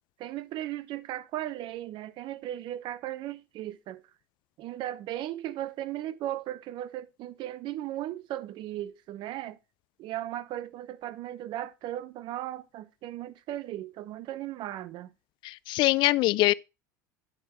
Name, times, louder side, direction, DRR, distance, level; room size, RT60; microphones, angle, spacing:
voice 1, 0.2-4.1 4.6-9.6 10.0-15.1, right 13 dB, 50° right, 0.8 m, -36 dB
voice 2, 15.4-16.5, left 18 dB, 50° left, 0.4 m, -23 dB
9.9 x 4.6 x 4.5 m
hypercardioid pair, 85°, 10 cm